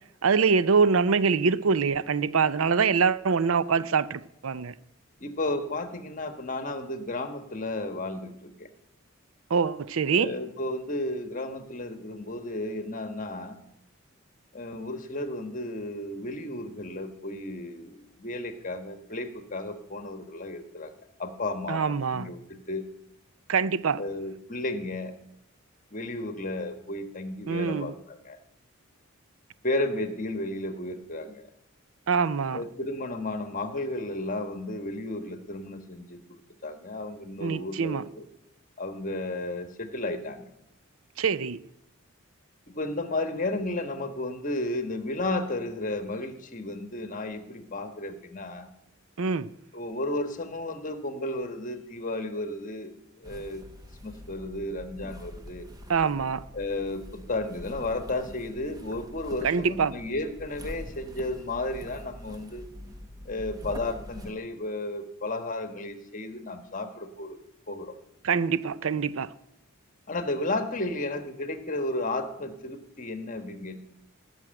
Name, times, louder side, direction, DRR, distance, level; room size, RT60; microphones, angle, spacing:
voice 1, 0.2-4.7 9.5-10.3 21.7-22.3 23.5-24.0 27.5-27.9 32.1-32.6 37.4-38.0 41.2-41.6 49.2-49.5 55.9-56.4 59.4-59.9 68.2-69.3, right 5 dB, 75° right, 0.5 m, -24 dB
voice 2, 5.2-8.7 10.2-13.6 14.5-20.9 21.2-22.8 24.0-25.1 25.9-28.4 29.6-31.5 32.5-36.2 36.6-38.3 38.8-40.4 42.7-48.7 49.7-52.9 53.2-53.6 54.0-55.7 56.5-62.7 63.2-67.4 67.7-68.0 70.1-73.8, left 2 dB, 40° left, 1.3 m, -33 dB
sound 1, 53.2-64.3, equal, 15° right, 1.1 m, -44 dB
18.0 x 6.1 x 9.0 m
head